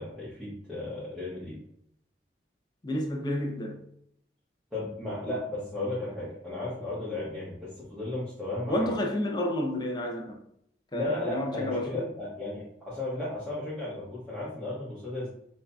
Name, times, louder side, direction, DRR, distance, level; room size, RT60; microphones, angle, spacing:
voice 1, 0.0-1.6 4.7-9.0 10.9-15.3, left 2 dB, ahead, 1.1 m, -35 dB
voice 2, 2.8-3.8 8.7-10.4 10.9-12.1, left 1 dB, 25° left, 0.5 m, -30 dB
6.0 x 2.7 x 2.3 m
head